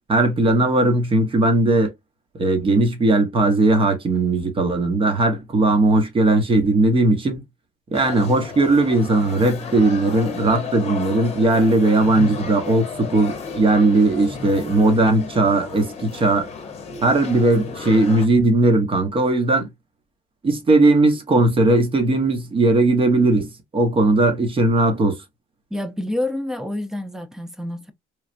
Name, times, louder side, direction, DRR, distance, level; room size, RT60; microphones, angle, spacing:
voice 1, 0.1-1.9 2.3-7.4 7.9-16.5 17.0-19.7 20.4-25.2, right 2 dB, 30° right, 1.0 m, -18 dB
sound 1, 7.9-18.3, left 5 dB, 40° left, 0.9 m, -33 dB
voice 2, 25.7-27.9, left 1 dB, 5° right, 0.5 m, -28 dB
3.2 x 2.3 x 2.5 m
cardioid pair, 110°, 17 cm